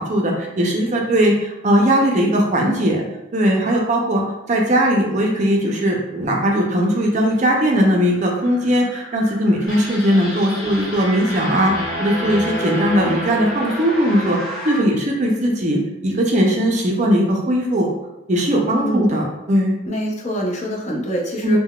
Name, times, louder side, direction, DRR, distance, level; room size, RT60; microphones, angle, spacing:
voice 1, 0.0-3.0 3.3-11.7 12.0-14.4 14.6-17.9 18.3-19.8 21.4-21.6, equal, 35° right, 0 dB, 0.4 m, -19 dB
sound 1, 6.9-14.8, equal, 5° left, 0.8 m, -35 dB
sound 2, 9.7-14.9, equal, 75° left, 0.8 m, -30 dB
voice 2, 19.9-21.6, right 1 dB, 35° left, -1 dB, 0.5 m, -24 dB
3.6 x 2.2 x 2.2 m, 0.91 s
head